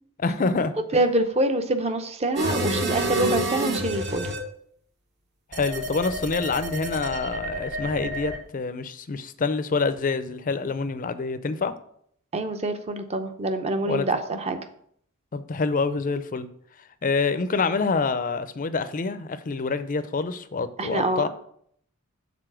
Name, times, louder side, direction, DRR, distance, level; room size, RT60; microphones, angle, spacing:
voice 1, 0.2-0.7 5.5-11.7 13.9-14.1 15.3-16.5 17.0-21.3, left 4 dB, 35° left, 12 dB, 0.5 m, -26 dB
voice 2, 0.9-4.3 12.3-14.6 20.8-21.3, right 2 dB, 30° right, 8 dB, 0.6 m, -25 dB
sound 1, 2.4-4.4 5.5-8.4, right 1 dB, 50° right, 1.1 m, -28 dB
6.8 x 4.1 x 6.1 m, 0.66 s
head